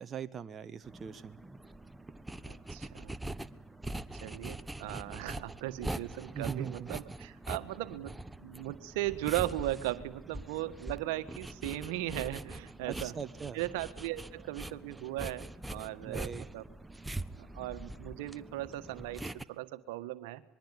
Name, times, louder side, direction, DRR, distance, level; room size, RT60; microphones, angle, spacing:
voice 1, 0.0-1.4 6.3-7.0 12.8-13.6 16.0-16.4, right 7 dB, 35° right, 10 dB, 1.2 m, -41 dB
sound 1, 0.8-19.4, right 1 dB, 10° right, 1.2 m, -43 dB
voice 2, 2.5-3.1 4.2-13.1 13.5-16.6 17.4-20.4, right 15 dB, 75° right, 10 dB, 1.6 m, -37 dB
26.0 x 22.5 x 9.9 m, 0.65 s
hypercardioid pair, 80°, 0 cm